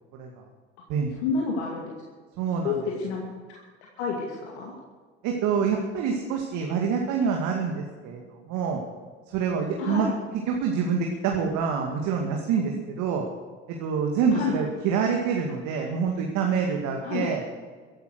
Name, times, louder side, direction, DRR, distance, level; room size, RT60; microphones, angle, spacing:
voice 1, 0.1-0.4 0.9-1.1 2.4-2.8 5.2-8.8 9.3-10.1 10.5-13.2 13.7-17.6, right 6 dB, 60° right, 1 dB, 2.2 m, -26 dB
voice 2, 1.2-1.9 2.6-3.2 3.5-3.6 4.0-4.7 9.8-10.1 14.3-14.6 17.0-17.3, left 5 dB, 75° left, -1 dB, 2.5 m, -29 dB
15.0 x 11.5 x 6.4 m, 1.5 s
hypercardioid pair, 70°, 34 cm